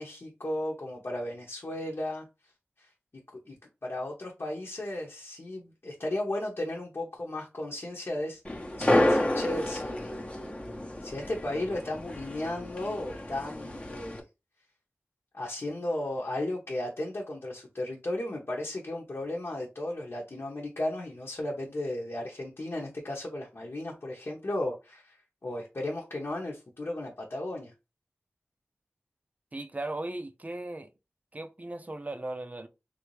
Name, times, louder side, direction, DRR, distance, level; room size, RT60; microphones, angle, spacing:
voice 1, 0.0-2.2 2.8-2.9 3.3-3.5 3.8-8.4 8.8-10.1 11.0-14.2 15.3-25.2 25.4-27.7, left 1 dB, 60° left, 0.9 m, -35 dB
sound 1, 8.4-14.2, left 1 dB, 25° left, 0.8 m, -30 dB
voice 2, 29.5-30.9 31.3-32.7, right 2 dB, 35° right, 0.6 m, -37 dB
3.3 x 2.7 x 3.1 m
cardioid pair, 40°, 5 cm